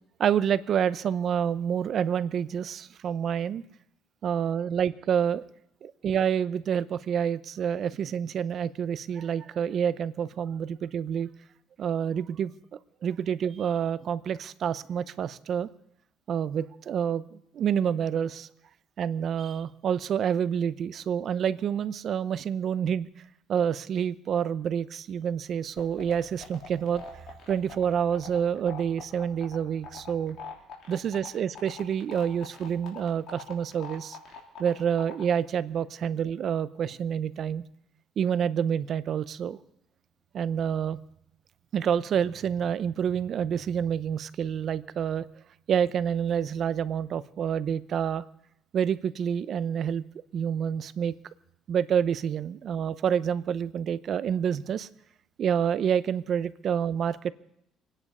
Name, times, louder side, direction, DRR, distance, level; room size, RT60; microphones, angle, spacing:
voice 1, 0.2-3.6 4.2-5.4 5.8-11.3 11.8-12.5 13.0-15.7 16.3-18.5 19.0-23.1 23.5-27.0 27.5-30.4 30.9-34.2 34.6-37.6 38.2-39.6 40.3-41.0 41.7-45.3 45.7-48.2 48.7-50.0 50.3-51.2 51.7-54.9 55.4-57.3, right 8 dB, 50° right, 16 dB, 0.6 m, -28 dB
sound 1, 25.8-35.2, left 5 dB, 60° left, 3.5 m, -42 dB
24.5 x 10.0 x 5.5 m, 0.77 s
cardioid pair, 120°, 0 cm